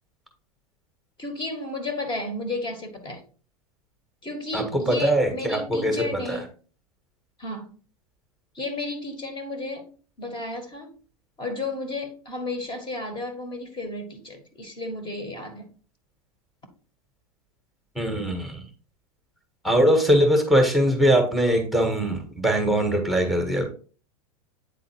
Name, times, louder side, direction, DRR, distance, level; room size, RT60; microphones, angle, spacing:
voice 1, 1.2-3.2 4.2-6.4 7.4-7.8 8.6-9.8 10.2-10.9 11.4-15.7, left 2 dB, 25° left, 1.9 m, -33 dB
voice 2, 4.5-6.5 18.0-18.7 19.6-23.7, equal, ahead, 1.6 m, -22 dB
9.1 x 3.7 x 4.5 m
figure-of-eight pair, 90°, 19 cm